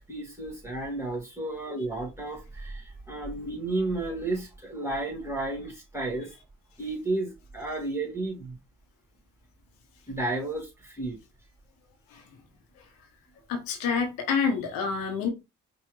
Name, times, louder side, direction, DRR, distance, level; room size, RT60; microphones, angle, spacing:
voice 1, 0.1-6.3 6.8-8.6 10.1-11.2, right 2 dB, 10° right, 2.5 m, -32 dB
voice 2, 13.5-15.3, left 6 dB, 75° left, 1.2 m, -27 dB
5.3 x 2.5 x 3.3 m
hypercardioid pair, 50°, 34 cm